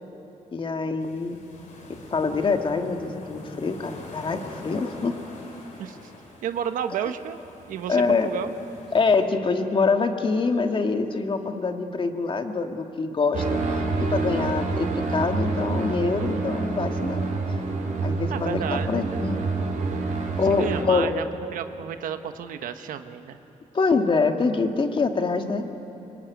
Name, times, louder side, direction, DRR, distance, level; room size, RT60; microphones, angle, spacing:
voice 1, 0.5-1.4 1.9-5.2 7.9-8.3 8.9-13.6 14.0-17.3 18.0-19.4 20.4-21.1 23.7-25.6, left 4 dB, 40° left, 5 dB, 1.9 m, -25 dB
sound 1, 1.0-9.2, left 2 dB, 75° left, 6.0 m, -44 dB
voice 2, 5.8-6.1 6.4-7.4 7.7-8.5 18.3-19.5 20.0-20.1 20.5-21.2 21.5-23.4, right 9 dB, 90° right, 9 dB, 1.3 m, -32 dB
sound 2, 13.3-20.8, right 3 dB, 65° right, 3.6 m, -27 dB
24.0 x 23.0 x 9.4 m, 3.0 s
cardioid pair, 100°, 14 cm